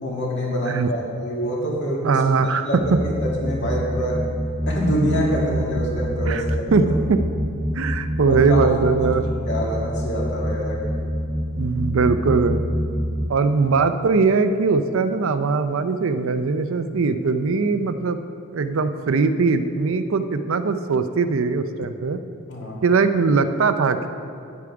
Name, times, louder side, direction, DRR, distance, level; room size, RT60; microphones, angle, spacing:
voice 1, 0.0-2.2 2.6-4.2 4.7-6.9 8.2-8.7 9.0-9.1 9.5-10.8 13.2-13.3 22.5-22.9, equal, 50° left, -4 dB, 2.3 m, -25 dB
voice 2, 2.0-2.7 6.3-6.4 6.7-6.8 7.1-7.2 7.7-9.3 11.5-12.6 13.3-18.2 18.5-22.2 22.8-24.1, right 4 dB, 65° right, 10 dB, 0.5 m, -20 dB
sound 1, 2.8-13.3, equal, 10° right, 0.7 m, -26 dB
9.8 x 8.4 x 4.8 m, 2.5 s
head